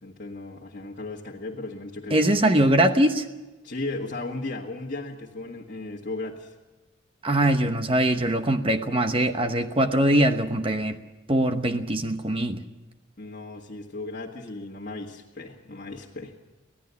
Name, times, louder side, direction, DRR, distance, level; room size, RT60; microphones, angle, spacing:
voice 1, 0.0-2.5 3.6-6.5 13.2-16.3, left 2 dB, 40° left, -2 dB, 1.7 m, -36 dB
voice 2, 2.1-3.2 7.2-11.0 11.3-12.6, right 1 dB, 25° right, 7 dB, 0.9 m, -22 dB
25.0 x 16.5 x 7.0 m, 1.1 s
head